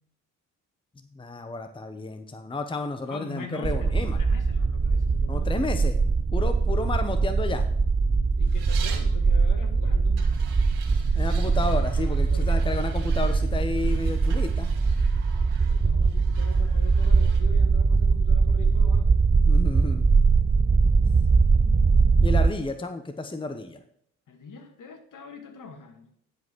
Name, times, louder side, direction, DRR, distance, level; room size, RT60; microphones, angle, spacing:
voice 1, 1.1-4.2 5.3-6.0 6.3-7.6 11.1-14.7 19.4-20.0 22.2-23.8, left 2 dB, 15° left, 7 dB, 1.0 m, -31 dB
voice 2, 3.0-5.8 8.4-10.3 12.0-12.5 15.6-19.2 24.3-26.1, left 4 dB, 55° left, 5 dB, 2.3 m, -43 dB
sound 1, 3.6-22.5, right 4 dB, 15° right, 0.6 m, -22 dB
sound 2, 8.5-9.1 10.2-17.4, right 8 dB, 90° right, 1.7 m, -45 dB
10.5 x 5.3 x 6.2 m, 0.69 s
supercardioid pair, 60°, 38 cm